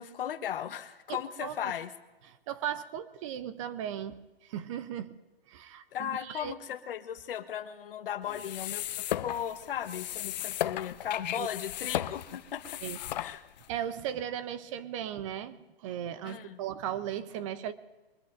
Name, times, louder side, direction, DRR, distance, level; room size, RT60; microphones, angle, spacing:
voice 1, 0.0-1.9 5.9-12.8 13.2-13.4 16.2-16.6, left 10 dB, 65° left, 11 dB, 1.1 m, -37 dB
voice 2, 1.1-1.7 2.3-5.2 5.5-6.5 11.4-11.5 12.8-13.0 13.7-17.7, right 10 dB, 30° right, 13 dB, 0.6 m, -37 dB
sound 1, 8.3-13.7, left 13 dB, 45° left, 0.5 m, -36 dB
23.0 x 20.0 x 2.6 m, 1.1 s
hypercardioid pair, 140°, 30 cm